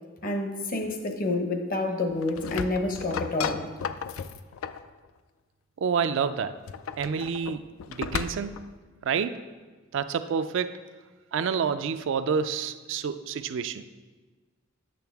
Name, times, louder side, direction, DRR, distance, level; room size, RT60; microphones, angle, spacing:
voice 1, 0.2-3.6, left 2 dB, 45° left, 5 dB, 0.8 m, -28 dB
sound 1, 2.1-4.9 6.5-8.7, left 7 dB, 80° left, 0.3 m, -35 dB
voice 2, 5.8-6.5 7.0-7.6 7.9-8.5 9.0-9.4 9.9-10.7 11.3-13.8, right 6 dB, 65° right, 11 dB, 0.4 m, -28 dB
8.5 x 6.5 x 3.5 m, 1.3 s
head